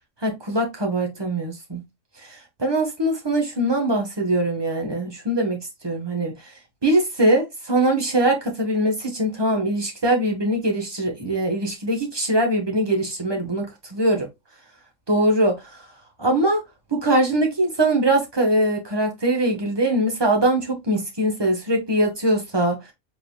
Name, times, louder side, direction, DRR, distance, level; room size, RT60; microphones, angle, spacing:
voice 1, 0.2-1.8 2.2-6.3 6.8-14.3 15.1-15.8 16.2-16.6 16.9-22.8, right 1 dB, 20° right, 1.1 m, -22 dB
4.7 x 3.7 x 2.3 m
omnidirectional pair, 1.4 m